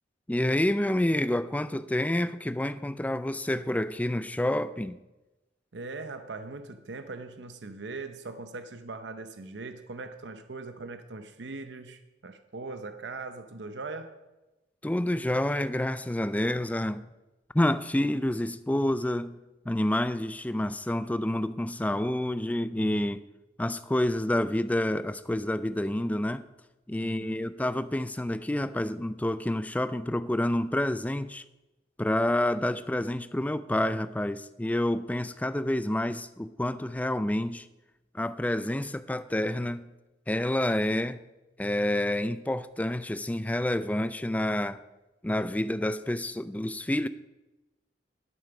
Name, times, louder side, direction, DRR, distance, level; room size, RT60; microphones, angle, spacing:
voice 1, 0.3-5.0 14.8-17.1 17.5-19.4 19.7-23.2 23.6-26.4 26.9-31.4 32.0-37.7 38.1-39.9 40.3-41.2 41.6-44.8 45.2-47.1, left 1 dB, 10° left, 0.4 m, -28 dB
voice 2, 5.7-14.2 27.0-27.3, right 3 dB, 75° right, 0.7 m, -40 dB
11.5 x 8.7 x 5.8 m
head